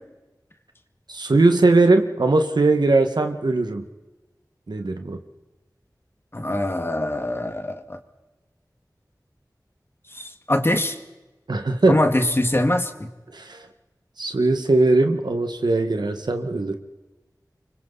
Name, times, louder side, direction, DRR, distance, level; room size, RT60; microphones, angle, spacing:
voice 1, 1.1-3.8 4.7-5.2 11.5-12.0 13.3-13.7 14.2-16.8, right 2 dB, 85° right, 6 dB, 1.8 m, -20 dB
voice 2, 6.3-8.0 10.1-11.0 11.9-13.1, left 1 dB, 35° left, 7 dB, 2.1 m, -23 dB
28.5 x 25.0 x 4.2 m, 1.1 s
wide cardioid pair, 60°, 7 cm